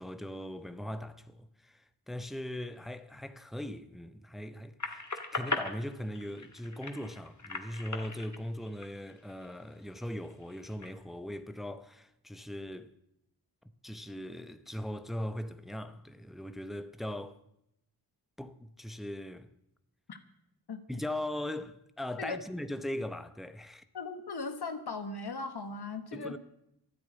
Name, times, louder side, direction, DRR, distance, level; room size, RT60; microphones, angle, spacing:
voice 1, 0.0-5.0 5.3-12.9 13.8-17.4 18.4-19.5 20.9-23.8 26.1-26.4, left 1 dB, ahead, 0.8 m, -39 dB
sound 1, 4.8-9.5 10.0-10.9, left 3 dB, 45° left, 1.8 m, -39 dB
voice 2, 20.7-21.0 22.2-22.4 23.9-26.3, left 3 dB, 75° left, 1.4 m, -38 dB
12.0 x 10.5 x 9.1 m
wide cardioid pair, 55°, 39 cm